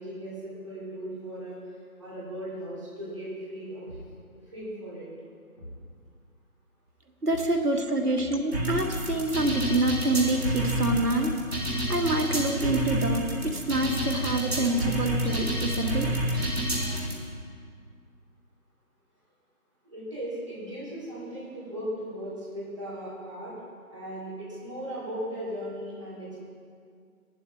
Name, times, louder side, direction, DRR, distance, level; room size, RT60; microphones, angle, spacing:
voice 1, 0.0-1.6 2.0-3.9 4.5-5.1 19.8-23.5 23.9-26.4, equal, 20° right, -9 dB, 2.6 m, -37 dB
Thump thud, 3.8-4.3 5.6-5.9 7.3-7.6 9.0-9.3 10.7-11.3, equal, 20° left, 1.8 m, -44 dB
voice 2, 7.2-11.3 11.9-16.1, right 2 dB, 90° right, 3 dB, 1.8 m, -26 dB
sound 1, 8.5-17.1, right 1 dB, 40° right, 2.3 m, -29 dB
15.0 x 11.5 x 3.2 m, 2.2 s
figure-of-eight pair, 175°, 45 cm